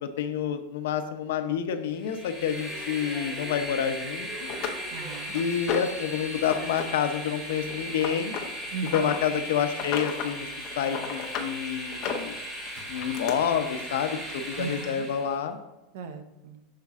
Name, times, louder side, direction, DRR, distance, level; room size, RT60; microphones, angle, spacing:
voice 1, 0.0-4.5 5.3-8.4 8.9-10.5 10.8-12.4 12.9-15.6, left 8 dB, 80° left, 8 dB, 0.6 m, -28 dB
Train, 1.9-15.4, equal, 20° right, 0.9 m, -37 dB
sound 1, 3.9-4.0 4.5-6.0 6.4-6.8 7.1-9.2 9.7-10.3 10.6-11.5 11.9-13.3 14.3-14.4 14.8-14.9, left 7 dB, 35° left, 0.7 m, -34 dB
voice 2, 4.9-5.3 8.7-9.2 14.6-15.1 15.9-16.6, right 5 dB, 65° right, 8 dB, 0.7 m, -37 dB
6.6 x 4.1 x 3.6 m, 0.98 s
supercardioid pair, 175°, 0 cm